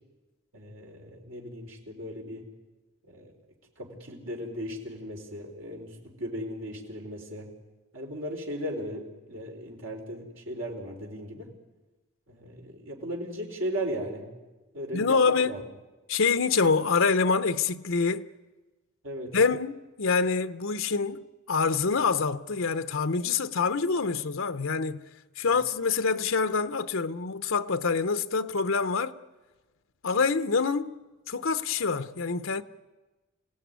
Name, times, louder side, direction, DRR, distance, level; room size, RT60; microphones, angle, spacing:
voice 1, 0.5-2.4 3.1-3.3 3.8-7.5 7.9-11.5 12.3-14.3 14.7-15.2 15.4-15.6 19.0-19.4 25.4-25.5, equal, 70° right, 4.4 m, -37 dB
voice 2, 14.9-15.6 16.1-18.3 19.3-25.0 25.4-29.1 30.0-30.9 31.3-32.6, left 4 dB, 70° left, 0.8 m, -26 dB
27.0 x 17.0 x 9.5 m
head